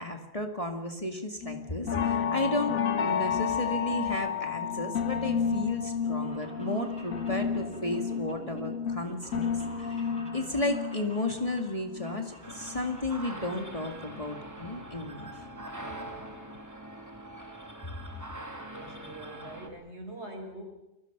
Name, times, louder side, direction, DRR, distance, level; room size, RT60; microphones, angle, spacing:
voice 1, 0.0-9.5 9.8-15.5, left 2 dB, 25° left, 4 dB, 2.2 m, -33 dB
sound 1, 1.4-13.6 13.9-15.5 15.9-16.3 16.6-16.7, left 7 dB, 85° left, 1.9 m, -32 dB
sound 2, 5.9-13.6 13.9-14.6 14.9-16.0 16.3-16.4 17.3-17.4 17.6-17.7 17.9-18.0 18.3-18.6 19.0-19.1 19.3-19.4, equal, 5° left, 7.1 m, -49 dB
sound 3, 12.4-19.7, right 1 dB, 15° right, 2.7 m, -43 dB
voice 2, 18.7-20.6, right 1 dB, 55° right, 4 dB, 5.2 m, -43 dB
30.0 x 23.0 x 6.1 m, 0.97 s
omnidirectional pair, 1.4 m